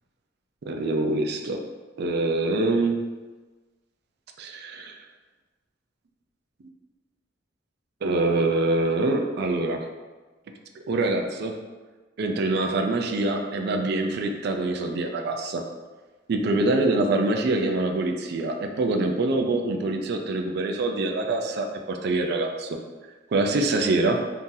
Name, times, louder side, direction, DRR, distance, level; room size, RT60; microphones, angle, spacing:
voice 1, 0.6-1.6 2.0-3.0 4.4-5.0 8.0-9.8 10.9-11.5 12.2-15.6 16.3-22.8 23.3-24.2, right 2 dB, 60° right, 4 dB, 0.4 m, -25 dB
2.7 x 2.6 x 3.7 m, 1.3 s
head